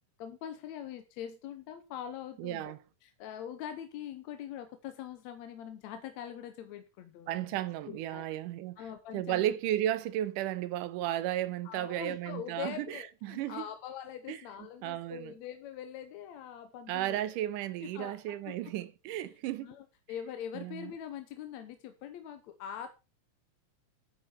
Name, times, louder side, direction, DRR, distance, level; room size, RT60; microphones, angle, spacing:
voice 1, 0.2-2.8 3.0-7.6 7.9-8.3 8.8-9.4 11.6-17.2 17.8-18.6 19.6-22.9, left 9 dB, 70° left, 2.0 m, -43 dB
voice 2, 2.4-2.8 7.3-8.8 9.1-13.6 14.3-14.4 14.8-15.3 16.9-19.8 20.5-20.9, right 13 dB, 85° right, 2.4 m, -34 dB
12.0 x 9.1 x 4.3 m
omnidirectional pair, 3.7 m